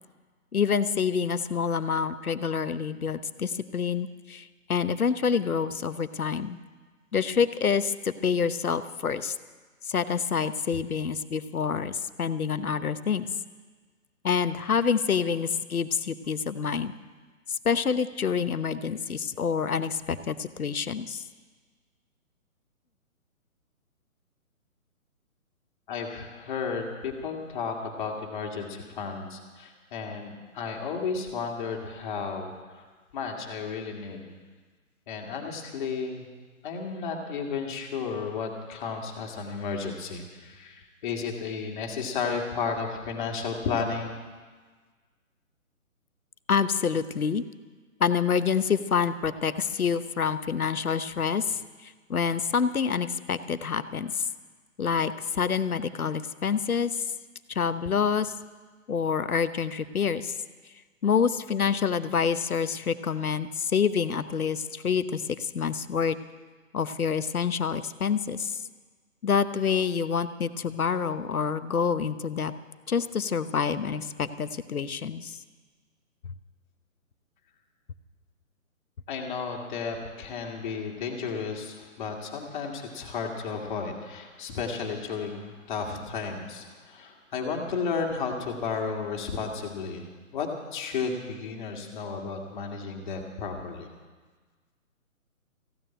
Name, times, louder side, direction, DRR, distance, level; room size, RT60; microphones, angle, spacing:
voice 1, 0.5-6.6 7.1-9.4 9.8-13.3 14.2-16.9 17.5-21.2 46.5-47.4 48.0-54.3 54.8-57.1 57.5-58.4 58.9-60.4 61.0-66.2 66.7-68.6 69.2-72.5 72.9-75.4, left 6 dB, 85° left, 13 dB, 0.9 m, -27 dB
voice 2, 25.9-32.8 33.1-34.4 35.1-36.2 36.6-44.2 79.1-93.9, left 5 dB, 35° left, 1 dB, 2.3 m, -33 dB
15.5 x 9.4 x 8.9 m, 1.4 s
figure-of-eight pair, 145°, 42 cm